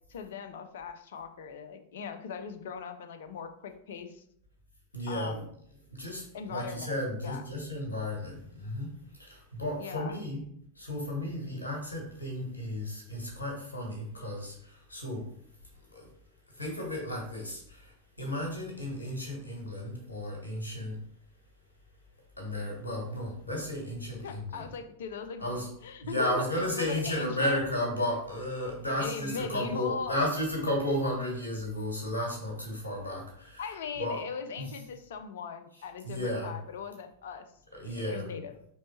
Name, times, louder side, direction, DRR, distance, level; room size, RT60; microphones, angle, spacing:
voice 1, 0.1-4.2 5.1-5.5 6.3-6.9 7.2-7.4 9.8-10.2 24.2-27.6 29.0-30.3 33.6-37.5 37.8-38.6, left 6 dB, 60° left, 8 dB, 0.5 m, -39 dB
voice 2, 4.9-5.4 5.9-10.4 10.8-15.3 15.9-16.1 16.6-21.0 22.4-24.6 25.4-25.7 26.0-33.7 34.0-34.2 34.6-34.7 36.0-36.5 37.7-38.3, left 1 dB, 75° left, 1 dB, 1.3 m, -33 dB
4.3 x 3.1 x 3.0 m, 0.68 s
figure-of-eight pair, 90°, 0 cm